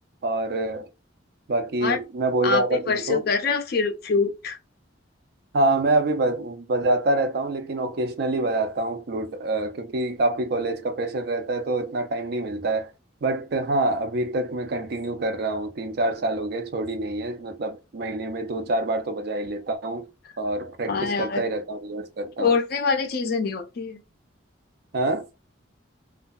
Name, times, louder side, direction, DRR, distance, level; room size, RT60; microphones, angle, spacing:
voice 1, 0.2-0.9 1.5-3.2 5.5-12.9 13.2-20.1 20.4-22.6 24.9-25.3, right 2 dB, 55° right, 0.4 m, -26 dB
voice 2, 2.4-4.6 20.9-21.4 22.4-24.0, left 5 dB, 50° left, 0.4 m, -24 dB
2.6 x 2.2 x 2.2 m
head